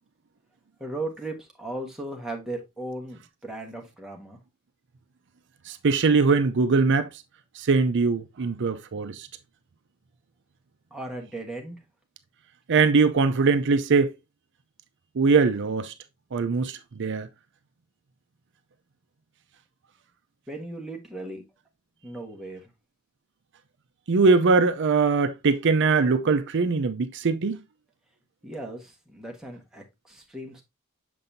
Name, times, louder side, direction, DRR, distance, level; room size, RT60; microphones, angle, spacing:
voice 1, 0.8-4.4 10.9-11.8 20.5-21.4 22.0-22.6 28.4-30.6, right 2 dB, ahead, 1.3 m, -37 dB
voice 2, 5.7-7.1 7.6-9.3 12.7-14.1 15.2-15.9 16.3-17.3 24.1-27.6, right 4 dB, 55° right, 0.5 m, -21 dB
6.8 x 5.4 x 2.6 m
head